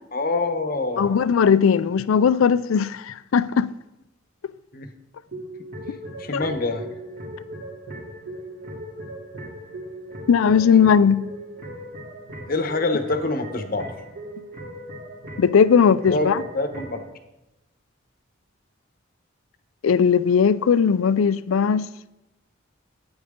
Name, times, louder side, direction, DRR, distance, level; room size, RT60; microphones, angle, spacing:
voice 1, 0.1-1.2 4.7-4.9 6.2-6.9 12.5-13.9 16.1-17.0, left 2 dB, 45° left, 0.9 m, -25 dB
voice 2, 1.0-3.7 6.3-6.5 10.3-11.3 15.4-16.4 19.8-21.9, left 6 dB, 80° left, 0.4 m, -18 dB
sound 1, 5.3-17.0, right 1 dB, 50° right, 2.9 m, -38 dB
12.0 x 8.8 x 3.7 m
head